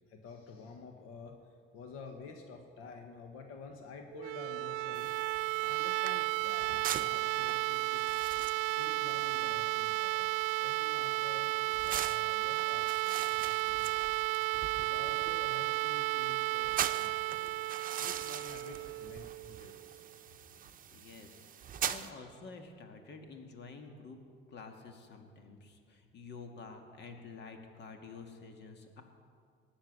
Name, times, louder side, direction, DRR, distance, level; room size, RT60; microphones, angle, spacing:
voice 1, 0.1-5.1 5.6-8.2 8.8-14.1 14.8-17.6 18.0-20.0, left 4 dB, 85° left, 4 dB, 1.5 m, -50 dB
sound 1, 4.1-19.9, right 21 dB, 90° right, 0.4 m, -33 dB
sound 2, 4.9-22.1, right 9 dB, 40° right, 0.7 m, -43 dB
voice 2, 20.9-24.2 24.5-29.0, left 4 dB, 55° left, 5 dB, 1.8 m, -49 dB
18.5 x 7.2 x 8.1 m, 2.2 s
cardioid pair, 100°, 21 cm